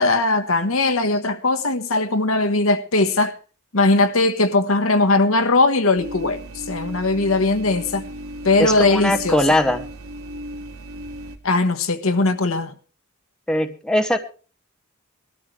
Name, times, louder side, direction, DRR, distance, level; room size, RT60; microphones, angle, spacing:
voice 1, 0.0-3.4 3.7-8.1 8.4-9.4 11.4-12.7, left 2 dB, 70° left, 1.3 m, -19 dB
sound 1, 6.0-11.4, equal, 75° right, 2.3 m, -35 dB
voice 2, 8.6-9.9 13.5-14.2, left 1 dB, 5° left, 1.0 m, -20 dB
20.5 x 13.0 x 3.3 m
head